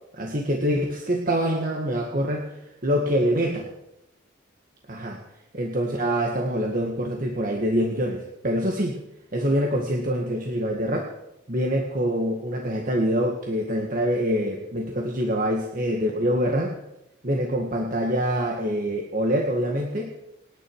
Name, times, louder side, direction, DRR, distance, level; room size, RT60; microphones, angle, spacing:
voice 1, 0.2-2.5 2.8-3.7 4.9-5.2 5.5-9.0 9.3-11.0 11.5-16.8 17.2-20.1, equal, 45° right, 1 dB, 1.9 m, -25 dB
28.0 x 10.5 x 4.8 m, 0.87 s
head